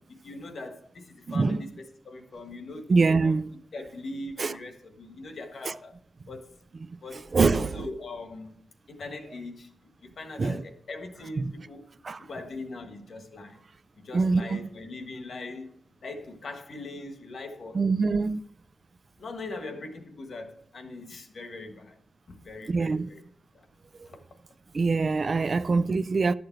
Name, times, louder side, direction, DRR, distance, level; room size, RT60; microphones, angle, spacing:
voice 1, 0.2-3.3 3.7-6.0 6.3-8.6 8.9-9.7 10.0-11.9 12.2-13.6 13.9-17.8 19.2-22.0 22.3-23.2 23.5-23.7 24.0-24.2, left 2 dB, 70° left, 1.4 m, -41 dB
voice 2, 1.3-1.6 2.9-3.5 4.4-4.5 5.6-5.7 6.9-7.9 10.4-10.6 11.4-11.5 12.0-12.2 14.1-14.6 17.7-18.4 22.7-23.1 24.0-24.1 24.7-26.3, right 4 dB, 40° right, 0.3 m, -24 dB
12.0 x 6.7 x 4.6 m
wide cardioid pair, 160°, 0 cm